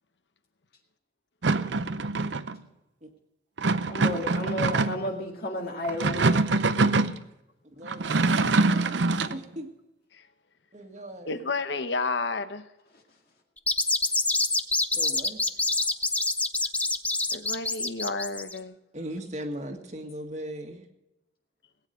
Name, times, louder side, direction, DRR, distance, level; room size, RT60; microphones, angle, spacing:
sound 1, 1.4-2.6 3.6-5.1 5.8-7.2 7.9-9.4, right 3 dB, 80° right, 0.7 m, -24 dB
voice 1, 3.9-6.5, left 1 dB, 55° left, 0 dB, 2.2 m, -32 dB
voice 2, 7.6-9.7 10.7-11.5 14.9-15.4 18.9-20.9, right 1 dB, 40° right, 3 dB, 1.8 m, -39 dB
voice 3, 11.2-12.6 17.3-18.8, left 3 dB, 75° left, 10 dB, 1.1 m, -31 dB
sound 2, 13.6-18.6, left 2 dB, 10° left, 0.5 m, -26 dB
18.5 x 9.4 x 5.2 m, 0.92 s
head